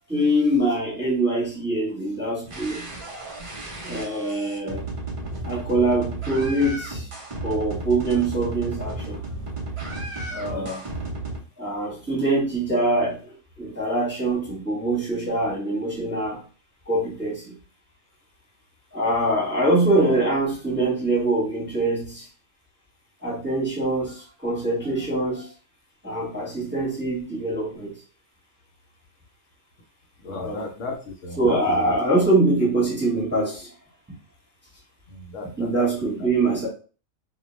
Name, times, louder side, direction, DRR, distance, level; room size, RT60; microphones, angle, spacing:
voice 1, 0.1-2.8 3.8-4.8 5.4-7.1 7.4-9.2 10.3-10.8 11.6-13.2 13.6-16.4 16.9-17.5 18.9-22.2 23.2-25.5 26.0-27.9 30.3-30.6 31.4-33.7 35.6-36.7, right 2 dB, 10° right, -5 dB, 0.9 m, -24 dB
sound 1, 2.5-11.4, right 2 dB, 50° right, 0.4 m, -33 dB
voice 2, 10.4-10.7 30.2-32.0 35.1-35.9, left 2 dB, 70° left, 1 dB, 0.9 m, -35 dB
2.2 x 2.2 x 3.0 m, 0.37 s
omnidirectional pair, 1.4 m